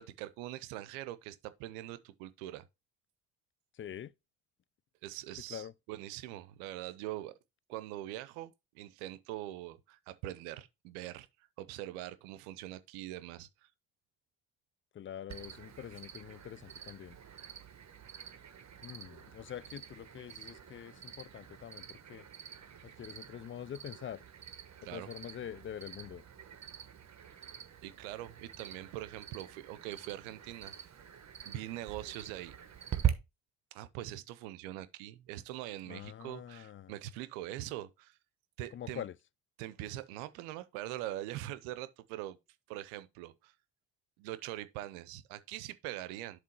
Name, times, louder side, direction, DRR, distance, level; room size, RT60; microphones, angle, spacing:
voice 1, 0.0-2.6 5.0-7.3 7.7-11.3 11.6-13.7 24.8-25.1 27.8-30.7 31.4-32.6 33.7-38.2 38.6-39.0 39.6-42.4 42.7-43.5 44.2-46.4, right 14 dB, 85° right, 0.7 m, -43 dB
voice 2, 3.7-4.1 5.5-5.7 14.9-17.2 18.8-22.2 22.8-24.2 24.9-26.2 35.9-36.9 38.7-39.2, left 10 dB, 30° left, 0.4 m, -45 dB
Cricket, 15.3-33.1, right 10 dB, 40° right, 1.3 m, -43 dB
7.4 x 3.1 x 5.9 m
hypercardioid pair, 55°, 42 cm